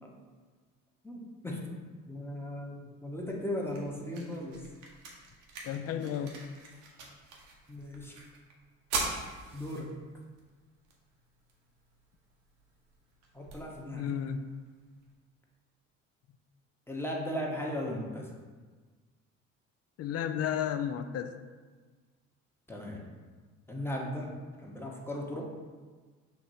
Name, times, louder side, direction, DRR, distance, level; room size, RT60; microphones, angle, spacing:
voice 1, 1.0-1.7 2.1-4.6 7.7-8.2 9.0-9.1 9.5-9.9 13.3-14.1 16.9-18.3 22.7-23.1 23.7-25.4, left 1 dB, 5° left, -2 dB, 0.9 m, -37 dB
sound 1, 3.1-15.1, right 3 dB, 75° right, 0.9 m, -44 dB
voice 2, 5.6-6.4 13.9-14.4 20.0-21.3, left 9 dB, 45° left, 9 dB, 0.4 m, -33 dB
5.9 x 2.8 x 2.7 m, 1.4 s
hypercardioid pair, 55°, 37 cm